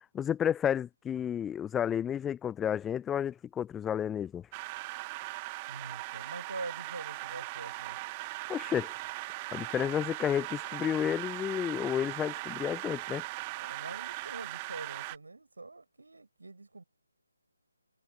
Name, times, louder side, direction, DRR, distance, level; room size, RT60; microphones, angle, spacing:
voice 1, 0.1-4.5 8.5-8.9 9.5-13.2, left 9 dB, 10° left, 0.4 m, -31 dB
sound 1, 4.5-15.2, right 24 dB, 20° right, 1.6 m, -39 dB
voice 2, 5.7-8.0 13.6-16.8, right 3 dB, 70° right, 7.6 m, -44 dB
figure-of-eight pair, 150°, 0 cm